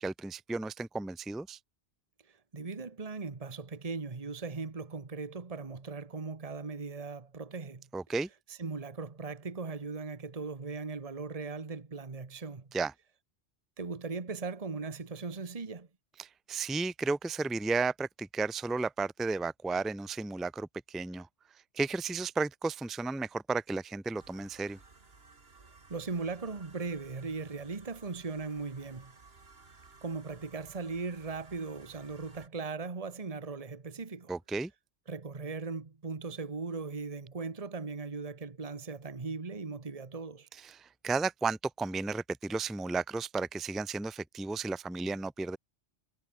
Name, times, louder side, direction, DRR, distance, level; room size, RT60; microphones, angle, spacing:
voice 1, 0.0-1.6 7.9-8.3 12.7-12.9 16.2-21.3 21.7-24.8 34.3-34.7 40.6-45.6, right 3 dB, ahead, 0.4 m, -33 dB
voice 2, 2.3-7.8 8.5-12.7 13.8-15.9 25.6-29.1 30.0-34.3 35.1-40.5, right 4 dB, 30° right, 1.5 m, -38 dB
sound 1, 24.2-32.5, right 3 dB, 55° right, 2.5 m, -57 dB
omnidirectional pair, 1.2 m